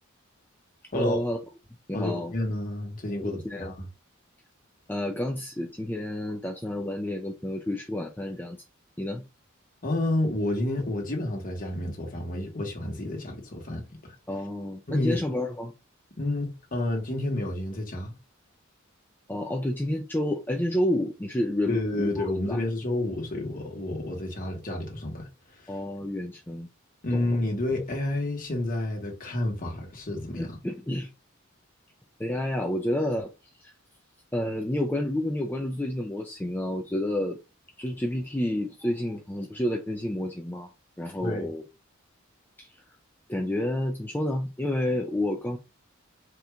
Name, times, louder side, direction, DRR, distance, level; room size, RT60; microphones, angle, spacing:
voice 1, 0.9-1.4 1.9-2.3 3.2-3.7 4.9-8.6 9.0-9.2 14.3-15.7 19.3-22.6 25.7-26.7 27.1-27.2 30.4-31.1 32.2-33.3 33.6-33.7 34.3-37.4 37.8-40.7 41.0-41.6 42.6-42.7 43.3-45.6, left 1 dB, 10° left, 0.5 m, -30 dB
voice 2, 1.9-3.7 9.8-13.8 14.9-15.2 16.2-18.1 21.6-25.3 27.0-30.6 41.2-41.5, left 1 dB, 45° left, 1.4 m, -30 dB
4.4 x 2.6 x 3.4 m
head